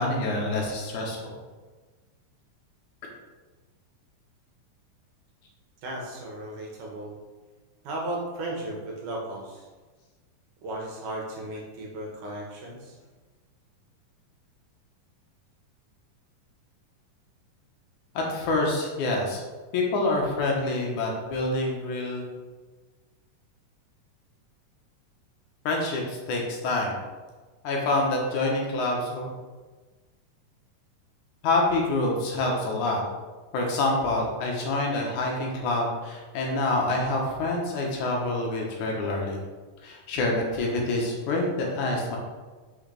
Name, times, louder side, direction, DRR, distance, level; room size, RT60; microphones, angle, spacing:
voice 1, 0.0-1.3 18.1-19.4 19.7-22.2 25.7-27.0 27.6-29.3 31.4-33.0 33.5-39.4 39.8-42.2, left 2 dB, 70° left, -1 dB, 2.5 m, -27 dB
voice 2, 5.8-7.2 7.8-9.7 10.6-13.0, right 1 dB, 75° right, -2 dB, 2.9 m, -35 dB
6.3 x 6.2 x 3.4 m, 1.3 s
omnidirectional pair, 3.8 m